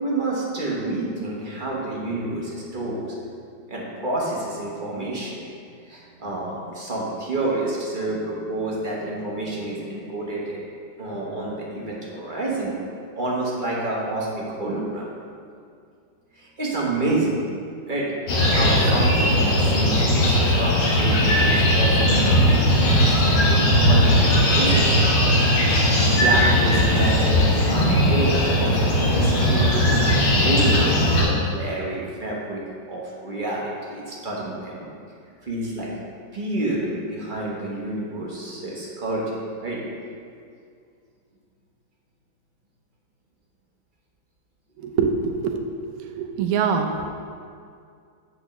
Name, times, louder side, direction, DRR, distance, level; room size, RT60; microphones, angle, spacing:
voice 1, 0.0-3.1 3.7-5.4 5.9-10.6 11.0-12.8 13.1-15.1 16.3-17.4 17.9-25.0 26.0-32.6 32.9-34.9 35.4-36.0 36.3-39.8, right 2 dB, 35° right, -5 dB, 0.9 m, -28 dB
sound 1, 18.3-31.2, left 1 dB, 90° left, 2.1 m, -18 dB
voice 2, 44.8-47.1, right 5 dB, 75° right, 4 dB, 0.8 m, -25 dB
8.1 x 6.3 x 3.0 m, 2.3 s
omnidirectional pair, 2.1 m